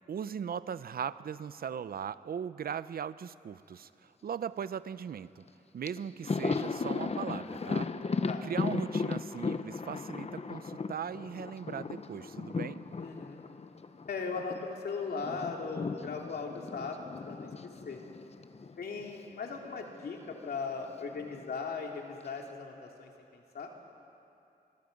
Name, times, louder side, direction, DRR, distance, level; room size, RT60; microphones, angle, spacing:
voice 1, 0.1-5.4 5.7-7.9 8.4-12.8, right 8 dB, 70° right, 15 dB, 0.6 m, -39 dB
Thunder, 5.5-5.6 5.8-14.7 14.9-19.2 19.5-19.7 20.8-21.5, left 4 dB, 40° left, 0.9 m, -36 dB
voice 2, 13.0-13.4 14.1-17.0 17.3-17.5 17.8-18.0 18.8-23.7, left 4 dB, 80° left, 1 dB, 2.7 m, -38 dB
24.5 x 23.0 x 5.3 m, 2.7 s
cardioid pair, 80°, 16 cm